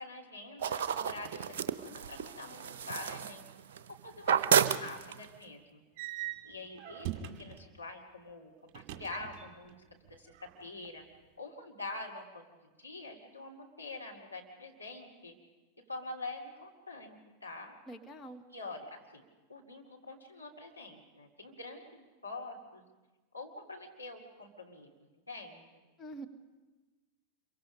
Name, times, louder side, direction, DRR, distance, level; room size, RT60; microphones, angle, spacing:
voice 1, 0.0-3.5 4.0-5.8 6.4-7.1 7.4-9.8 10.0-11.0 11.4-15.3 15.9-17.7 18.5-22.8 23.3-24.9 25.3-25.8, left 2 dB, 85° left, -1 dB, 3.2 m, -46 dB
sound 1, 0.6-3.9 4.2-5.4, right 8 dB, 55° right, 0.8 m, -31 dB
sound 2, 6.0-7.7 8.7-9.8 10.0-10.9, right 12 dB, 40° right, 2.1 m, -42 dB
voice 2, 17.9-18.4 26.0-26.3, right 1 dB, 20° left, 4 dB, 1.6 m, -45 dB
27.0 x 23.5 x 5.3 m, 1.2 s
figure-of-eight pair, 90°, 0 cm